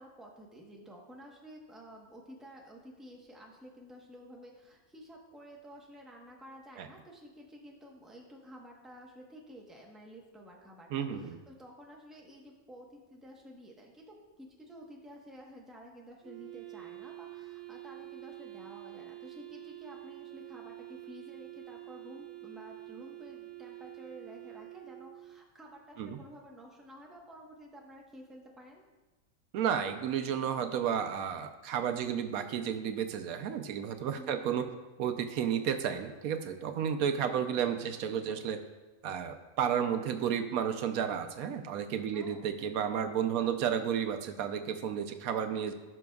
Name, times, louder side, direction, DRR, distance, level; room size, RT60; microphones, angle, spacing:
voice 1, 0.0-28.9 34.2-34.5 42.1-42.4 43.3-43.5, equal, ahead, -2 dB, 0.9 m, -52 dB
voice 2, 10.9-11.4 26.0-26.2 29.5-34.6 35.0-38.6 39.0-45.7, right 8 dB, 90° right, 7 dB, 1.1 m, -32 dB
Wind instrument woodwind instrument, 16.2-25.5, right 18 dB, 50° right, 0.9 m, -47 dB
15.5 x 6.1 x 2.3 m, 1.2 s
omnidirectional pair, 1.5 m